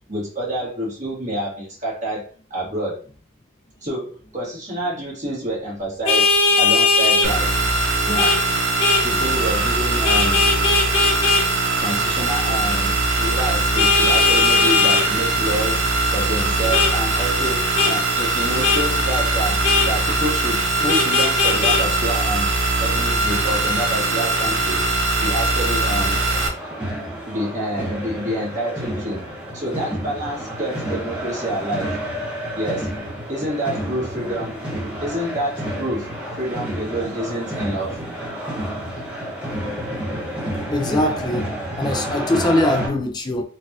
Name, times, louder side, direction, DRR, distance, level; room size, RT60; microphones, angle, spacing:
voice 1, 0.1-3.0 3.8-7.6 8.0-8.4 9.0-10.5 11.8-22.5 22.8-24.8 25.1-26.2 27.3-29.3 29.5-32.0 32.5-32.9 33.3-34.6 35.0-36.1 36.4-38.0, right 1 dB, 35° right, 1.5 m, -28 dB
Vehicle horn car horn honking, 6.1-7.3 8.2-8.4 8.8-9.0 10.0-11.4 13.8-15.1 16.7-16.9 17.8-17.9 18.6-18.8 19.6-19.9 20.9-21.8, left 4 dB, 75° left, 0.7 m, -18 dB
sound 1, 7.2-26.5, right 2 dB, 60° right, 0.7 m, -21 dB
sound 2, 26.0-42.9, equal, 5° right, 0.9 m, -30 dB
voice 2, 40.7-43.4, left 1 dB, 20° left, 0.3 m, -22 dB
3.9 x 2.4 x 2.7 m
head